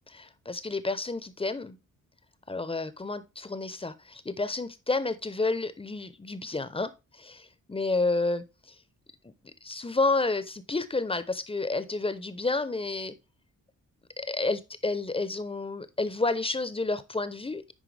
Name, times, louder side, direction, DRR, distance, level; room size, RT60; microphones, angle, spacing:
voice 1, 0.1-1.8 2.5-8.7 9.2-9.3 9.6-13.2 14.2-17.7, left 3 dB, 15° left, 0.8 m, -30 dB
10.0 x 4.5 x 3.4 m
cardioid pair, 85°, 33 cm